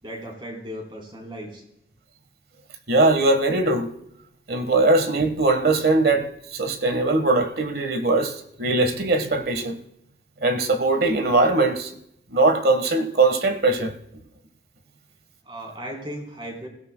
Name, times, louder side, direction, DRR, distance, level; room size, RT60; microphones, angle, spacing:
voice 1, 0.0-1.6 15.4-16.7, equal, 30° right, 3.9 m, -36 dB
voice 2, 2.9-3.9 4.5-9.8 10.4-11.9 12.3-13.9, right 2 dB, 55° right, 1.4 m, -21 dB
27.5 x 16.5 x 2.3 m
head